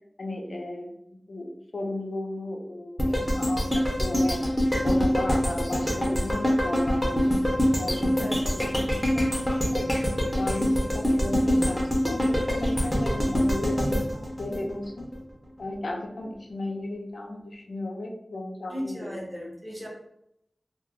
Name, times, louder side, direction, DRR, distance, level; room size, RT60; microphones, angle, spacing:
voice 1, 0.2-1.5 1.7-4.4 4.8-9.3 9.7-11.8 12.1-15.1 15.6-19.1, left 2 dB, 80° left, 1 dB, 0.5 m, -35 dB
sound 1, 3.0-15.2 15.6-15.7, equal, 10° left, 0.7 m, -25 dB
voice 2, 8.2-8.6 18.7-19.9, equal, 30° right, -5 dB, 1.1 m, -36 dB
2.4 x 2.1 x 3.6 m, 0.78 s
wide cardioid pair, 75°, 0 cm